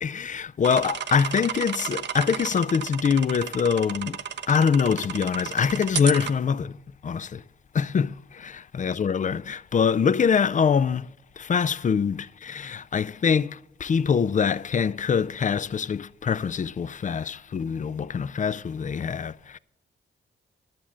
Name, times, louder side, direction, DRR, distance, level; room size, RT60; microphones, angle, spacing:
voice 1, 0.0-4.2 4.5-6.8 7.0-7.4 7.7-11.1 11.4-19.6, left 6 dB, 40° left, 0.4 m, -24 dB
sound 1, 0.6-6.3, right 7 dB, 60° right, 0.6 m, -33 dB
12.0 x 7.2 x 6.2 m
cardioid pair, 65°, 20 cm